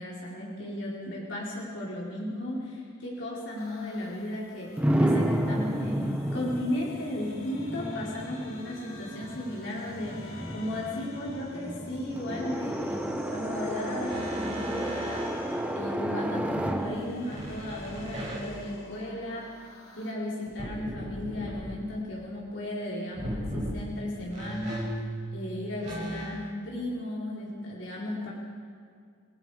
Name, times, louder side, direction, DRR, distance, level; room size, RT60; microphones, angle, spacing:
voice 1, 0.0-4.7 5.0-13.0 13.3-15.2 15.7-19.5 20.0-24.9 25.3-28.3, left 1 dB, 55° left, -5 dB, 4.2 m, -35 dB
sound 1, 3.6-20.1, equal, 90° left, 3.4 m, -48 dB
sound 2, 4.8-18.6, right 1 dB, 5° right, 1.0 m, -32 dB
sound 3, 14.0-15.3 17.3-18.8 20.5-21.7 23.1-23.8 24.3-26.6, right 1 dB, 35° right, 7.2 m, -37 dB
29.5 x 18.0 x 5.0 m, 2.2 s
head